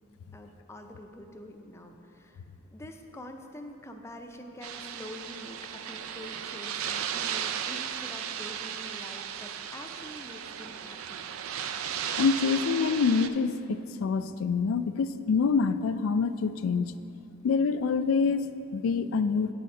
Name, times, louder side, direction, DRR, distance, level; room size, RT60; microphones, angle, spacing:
voice 1, 0.3-2.4 2.7-11.3, left 1 dB, 15° left, 4 dB, 0.4 m, -46 dB
sound 1, 4.6-13.3, right 8 dB, 90° right, 0.4 m, -35 dB
voice 2, 12.1-16.9 17.4-19.5, left 5 dB, 85° left, 12 dB, 0.3 m, -26 dB
9.1 x 4.2 x 4.8 m, 2.6 s
head